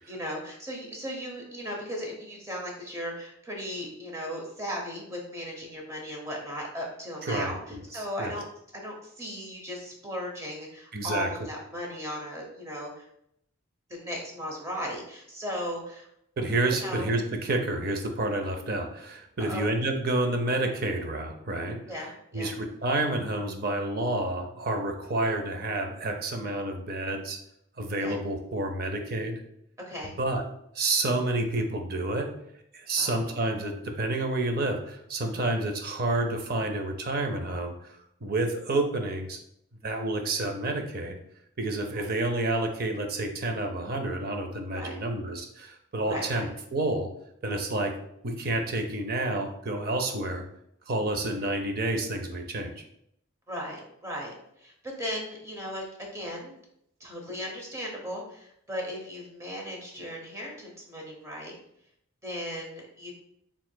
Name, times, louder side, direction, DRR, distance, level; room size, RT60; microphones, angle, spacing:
voice 1, 0.0-8.4 8.7-13.1 13.9-16.1 16.8-17.1 19.4-19.7 21.9-22.5 28.0-28.2 29.9-30.1 33.0-33.4 35.2-35.4 41.9-42.1 44.7-45.0 46.0-46.5 53.5-56.6 57.0-61.5 62.2-63.1, equal, 15° right, -1 dB, 0.8 m, -37 dB
voice 2, 7.2-8.3 10.9-11.3 16.4-21.8 22.3-27.4 27.8-29.4 30.0-30.4 30.7-32.3 32.7-37.7 38.2-39.4 39.8-41.2 41.6-47.1 47.4-47.9 48.2-50.4 50.9-52.8, right 2 dB, 45° right, 4 dB, 0.5 m, -29 dB
4.5 x 3.6 x 2.2 m, 0.74 s
head